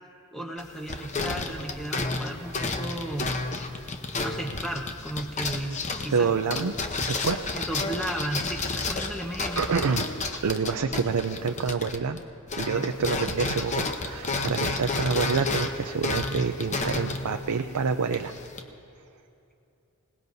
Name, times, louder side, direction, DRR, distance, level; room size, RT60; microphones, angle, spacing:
voice 1, 0.3-3.4 4.2-6.3 7.5-10.0, right 1 dB, ahead, 1 dB, 1.1 m, -34 dB
sound 1, 0.6-12.2 12.5-18.6, left 3 dB, 30° left, 0.8 m, -31 dB
voice 2, 6.1-6.7 7.0-7.4 9.6-10.1 10.4-12.2 12.6-18.3, right 5 dB, 85° right, 6 dB, 0.5 m, -27 dB
26.5 x 18.5 x 2.7 m, 2.7 s
head